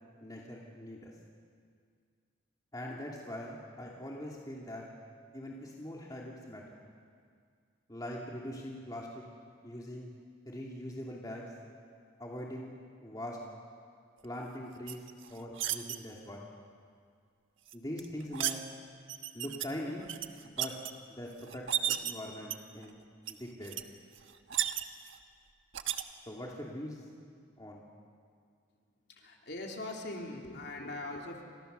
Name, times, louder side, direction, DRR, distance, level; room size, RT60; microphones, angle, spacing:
voice 1, 0.2-1.1 2.7-4.8 5.3-6.6 7.9-9.2 9.6-10.1 10.4-11.5 12.2-12.7 13.0-13.4 14.2-15.0 15.3-16.4 17.7-18.6 19.3-20.1 20.4-20.7 21.2-23.0 23.3-23.8 26.3-27.0 27.6-27.8, left 1 dB, 20° left, -3 dB, 2.8 m, -42 dB
sound 1, 14.9-16.0 17.7-18.6 19.1-19.7 20.0-20.9 21.5-22.1 22.5-22.9 23.3-23.4 23.6-23.8 24.2-25.2 25.7-26.0, right 11 dB, 75° right, 1.3 m, -34 dB
voice 2, 29.1-31.4, left 2 dB, 55° left, 0 dB, 3.4 m, -41 dB
29.5 x 26.5 x 6.9 m, 2.1 s
head